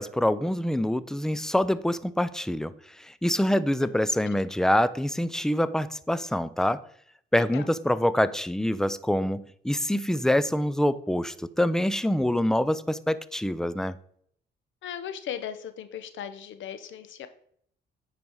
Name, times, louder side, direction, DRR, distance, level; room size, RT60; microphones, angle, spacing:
voice 1, 0.0-6.8 7.3-14.0, left 1 dB, 5° left, 0.4 m, -25 dB
voice 2, 7.4-7.7 14.8-17.3, left 9 dB, 75° left, 1.0 m, -38 dB
9.4 x 4.9 x 4.6 m
cardioid pair, 90°, 20 cm